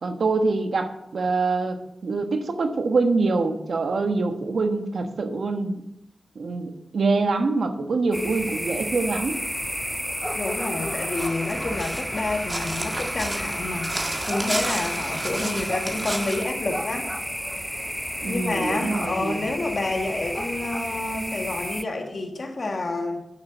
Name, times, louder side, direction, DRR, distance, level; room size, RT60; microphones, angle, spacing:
voice 1, 0.0-5.8 6.3-9.4 18.2-19.5, right 3 dB, 85° right, 1.2 m, -25 dB
sound 1, 8.1-21.8, equal, ahead, 0.5 m, -31 dB
voice 2, 10.4-17.1 18.3-23.2, left 2 dB, 70° left, 1.8 m, -29 dB
Crow, 10.6-16.4, right 1 dB, 30° right, 1.9 m, -32 dB
10.5 x 6.5 x 6.8 m
cardioid pair, 45°, 0 cm